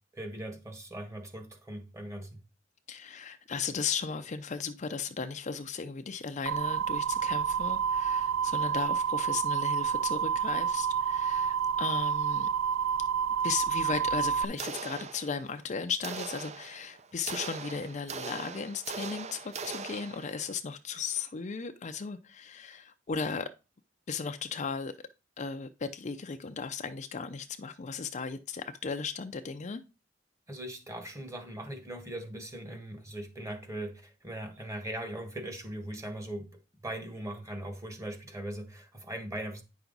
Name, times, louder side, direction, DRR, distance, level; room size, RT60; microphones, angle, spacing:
voice 1, 0.1-2.4 30.5-36.5 36.8-39.6, right 1 dB, 15° right, 1.4 m, -40 dB
voice 2, 2.9-12.5 13.4-23.5 24.1-24.9 25.4-29.8, left 5 dB, 35° left, 0.5 m, -36 dB
sound 1, 6.5-14.4, right 7 dB, 85° right, 0.6 m, -29 dB
sound 2, 14.6-15.6 16.0-20.5, right 5 dB, 35° right, 0.5 m, -41 dB
9.2 x 5.9 x 3.9 m
head